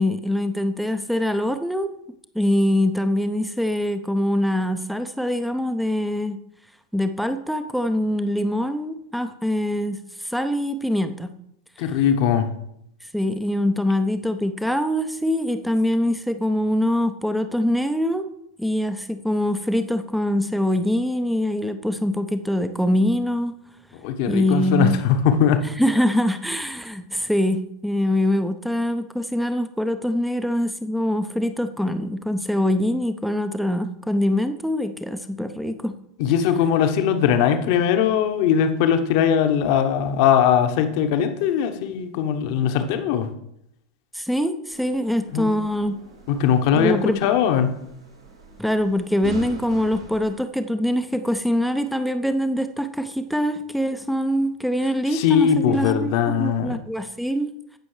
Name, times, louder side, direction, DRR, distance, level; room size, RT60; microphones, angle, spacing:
voice 1, 0.0-1.9 2.3-6.4 6.9-11.3 13.1-18.2 18.6-23.5 24.3-24.9 25.8-35.9 44.1-46.0 46.7-47.2 48.6-56.1 56.4-57.5, left 1 dB, ahead, 9 dB, 0.6 m, -23 dB
voice 2, 11.8-12.5 24.0-25.6 36.2-43.3 45.3-45.5 46.3-47.7 55.1-56.8, left 8 dB, 50° left, 7 dB, 1.1 m, -20 dB
sound 1, 44.7-50.3, right 3 dB, 80° right, 2.2 m, -41 dB
16.0 x 6.2 x 3.2 m, 0.75 s
figure-of-eight pair, 85°, 3 cm